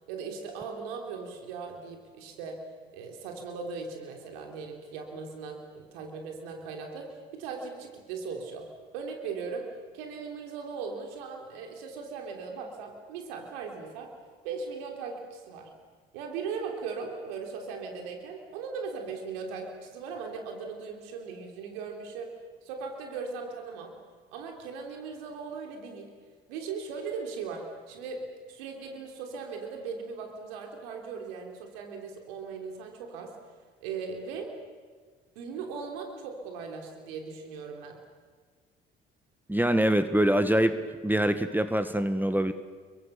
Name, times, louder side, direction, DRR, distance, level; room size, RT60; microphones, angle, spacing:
voice 1, 0.1-2.6 2.9-8.7 8.9-9.7 9.9-14.1 14.4-15.7 16.1-22.4 22.6-23.9 24.3-26.1 26.5-33.3 33.8-34.6 35.4-38.0, right 5 dB, 80° right, 3 dB, 3.4 m, -38 dB
voice 2, 39.5-42.5, right 1 dB, 5° right, 10 dB, 1.7 m, -24 dB
28.5 x 23.0 x 7.1 m, 1.5 s
hypercardioid pair, 55°, 29 cm